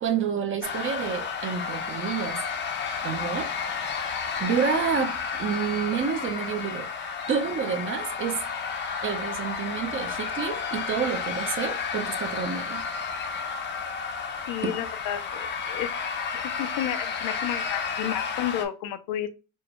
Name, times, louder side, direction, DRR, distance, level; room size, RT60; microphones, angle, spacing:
voice 1, 0.0-2.4 3.0-3.5 4.4-5.1 5.4-6.9 7.3-8.4 9.0-12.8 14.6-14.7, right 7 dB, 40° right, 0.7 m, -29 dB
sound 1, 0.6-18.7, left 6 dB, 35° left, 0.6 m, -32 dB
voice 2, 14.5-15.9 16.6-19.3, left 11 dB, 75° left, 0.6 m, -31 dB
4.5 x 2.2 x 3.0 m
cardioid pair, 140°, 32 cm